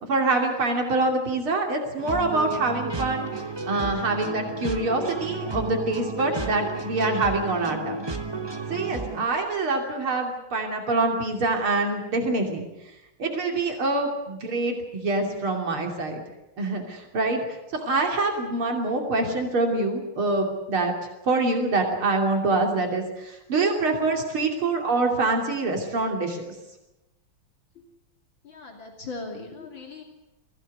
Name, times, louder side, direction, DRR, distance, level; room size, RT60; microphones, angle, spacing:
voice 1, 0.0-3.3 3.7-8.0 8.7-12.6 13.2-16.2 16.6-20.9 21.2-26.5, right 2 dB, 80° right, 2 dB, 3.7 m, -25 dB
sound 1, 2.0-9.3, right 3 dB, 15° right, 1.0 m, -32 dB
voice 2, 28.4-30.0, left 3 dB, 65° left, 2 dB, 3.4 m, -39 dB
23.0 x 16.5 x 9.6 m, 0.96 s
omnidirectional pair, 2.3 m